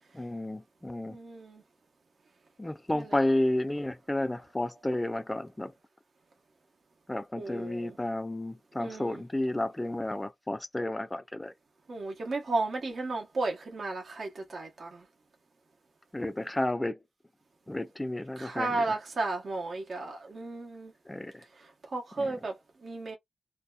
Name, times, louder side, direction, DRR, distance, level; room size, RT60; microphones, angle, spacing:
voice 1, 0.1-1.2 2.6-5.7 7.1-11.5 16.1-17.0 17.7-18.8 21.1-21.4 22.2-22.4, left 1 dB, 10° left, 0.3 m, -32 dB
voice 2, 1.1-1.6 2.9-3.1 7.4-8.0 8.8-9.2 11.9-15.0 18.4-20.9 21.9-23.2, right 3 dB, 50° right, 0.8 m, -34 dB
2.6 x 2.2 x 2.2 m
wide cardioid pair, 130°, 0 cm